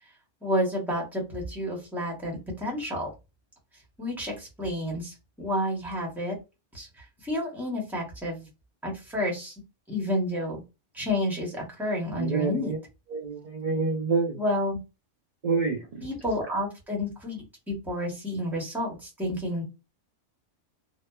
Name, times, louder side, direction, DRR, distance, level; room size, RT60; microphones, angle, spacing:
voice 1, 0.4-3.1 4.0-6.3 6.7-8.5 8.8-9.5 9.9-10.6 10.9-12.7 14.4-14.8 16.0-19.6, left 1 dB, ahead, -2 dB, 0.7 m, -30 dB
voice 2, 12.1-12.8 13.1-14.4 15.4-16.1, right 4 dB, 50° right, 0 dB, 0.5 m, -27 dB
2.8 x 2.1 x 2.2 m, 0.26 s
omnidirectional pair, 1.3 m